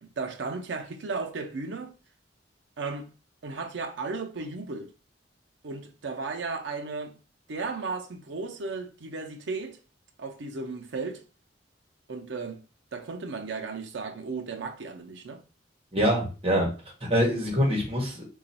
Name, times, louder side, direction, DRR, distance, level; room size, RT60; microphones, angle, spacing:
voice 1, 0.0-1.9 2.8-3.1 3.4-4.9 5.6-7.2 7.5-9.8 10.2-11.2 12.1-12.6 12.9-15.4, right 4 dB, 80° right, 0.6 m, -35 dB
voice 2, 15.9-16.7 17.0-18.2, equal, 30° right, 1.2 m, -24 dB
2.9 x 2.3 x 4.1 m
head